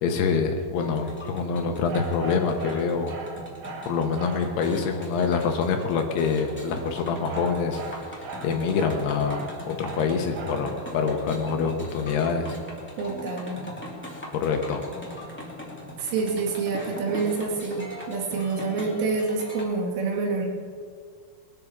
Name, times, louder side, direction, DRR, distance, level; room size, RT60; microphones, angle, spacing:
voice 1, 0.0-3.1 3.9-7.8 8.4-10.7 10.9-12.6 14.3-14.8, left 5 dB, 70° left, 4 dB, 2.8 m, -25 dB
sound 1, 0.8-19.6, left 1 dB, 5° left, 1.2 m, -40 dB
sound 2, 1.9-4.5 6.7-10.7, right 3 dB, 65° right, 2.9 m, -39 dB
voice 2, 13.0-13.6 16.0-20.5, right 4 dB, 80° right, 0 dB, 4.7 m, -27 dB
21.5 x 12.5 x 4.7 m, 2.1 s
omnidirectional pair, 5.6 m